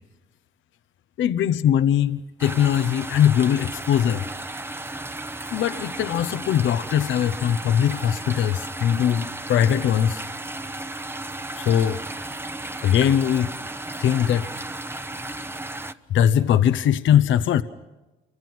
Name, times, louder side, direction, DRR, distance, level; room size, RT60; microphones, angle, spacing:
voice 1, 1.2-4.3 5.5-10.2 11.5-12.0 12.8-13.5 14.0-14.7 16.1-17.6, left 9 dB, 75° left, 0.9 m, -21 dB
sound 1, 2.4-15.9, right 2 dB, 10° right, 0.9 m, -34 dB
29.0 x 25.0 x 6.1 m
cardioid pair, 90°, 20 cm